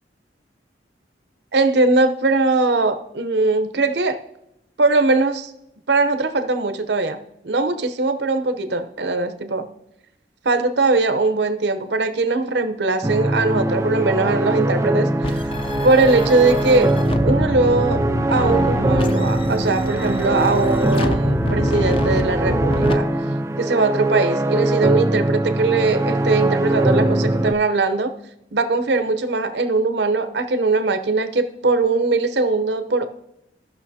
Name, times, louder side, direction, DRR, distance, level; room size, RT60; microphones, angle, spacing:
voice 1, 1.5-4.2 4.8-5.5 5.9-7.2 7.4-9.7 10.4-15.4 15.8-16.9 17.2-23.1 23.6-28.2 28.5-33.1, right 3 dB, 70° right, 9 dB, 0.8 m, -20 dB
sound 1, 13.0-27.5, right 1 dB, 15° right, 0.3 m, -21 dB
sound 2, 15.2-22.9, left 1 dB, 30° left, 0.5 m, -26 dB
16.0 x 5.9 x 2.7 m, 0.83 s
head